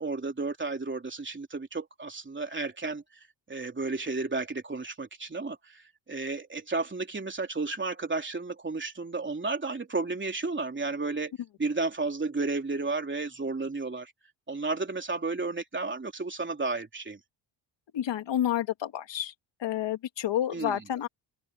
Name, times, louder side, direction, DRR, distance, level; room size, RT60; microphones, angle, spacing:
voice 1, 0.0-3.0 3.5-5.8 6.1-11.3 11.6-14.1 14.5-17.2 20.5-20.8, right 3 dB, 25° right, 3.5 m, -32 dB
voice 2, 17.9-19.3 19.6-21.1, left 11 dB, 65° left, 1.9 m, -29 dB
cardioid pair, 85°, 47 cm